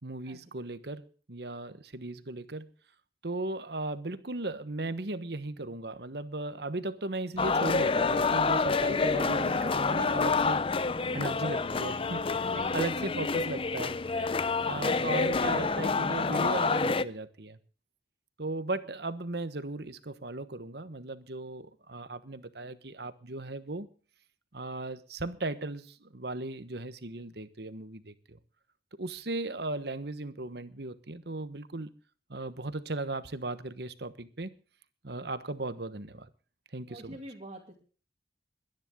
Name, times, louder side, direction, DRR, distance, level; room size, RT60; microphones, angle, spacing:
voice 1, 0.0-2.7 3.2-10.6 11.1-17.6 18.4-23.9 24.5-28.4 29.0-31.9 32.3-34.5 35.0-36.3 36.7-37.2, right 2 dB, 65° right, 1.3 m, -37 dB
sound 1, 7.4-17.0, left 4 dB, 30° left, 0.6 m, -28 dB
voice 2, 36.9-37.8, right 1 dB, 35° right, 2.5 m, -44 dB
22.5 x 10.5 x 3.8 m
head